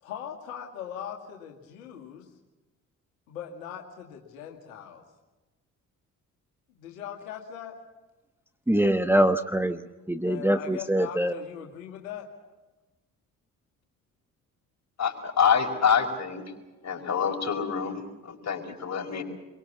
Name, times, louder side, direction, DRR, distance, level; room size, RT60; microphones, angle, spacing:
voice 1, 0.0-2.3 3.3-5.0 6.7-7.8 10.3-12.3 19.0-19.2, left 9 dB, 75° left, 2.3 m, -40 dB
voice 2, 8.7-9.8 10.1-11.3, right 1 dB, 5° right, 1.2 m, -23 dB
voice 3, 15.0-16.4 16.8-19.2, left 7 dB, 40° left, 5.2 m, -26 dB
27.5 x 23.5 x 7.2 m
figure-of-eight pair, 45°, 40 cm